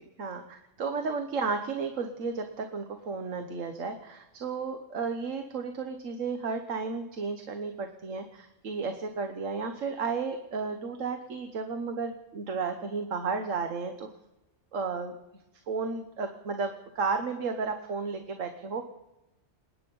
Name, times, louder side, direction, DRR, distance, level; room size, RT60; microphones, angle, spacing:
voice 1, 0.2-14.1 14.7-15.1 15.7-18.8, right 4 dB, 90° right, 6 dB, 1.5 m, -33 dB
27.0 x 9.7 x 5.5 m, 0.96 s
omnidirectional pair, 1.3 m